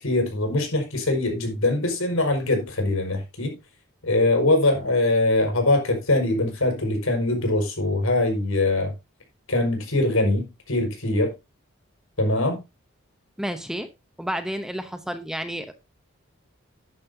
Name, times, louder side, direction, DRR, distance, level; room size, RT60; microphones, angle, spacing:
voice 1, 0.0-3.6 4.0-8.9 9.5-11.3 12.2-12.6, left 2 dB, 75° left, 5.5 m, -22 dB
voice 2, 13.4-13.9 14.2-15.7, equal, ahead, 0.8 m, -30 dB
12.0 x 10.5 x 2.8 m
head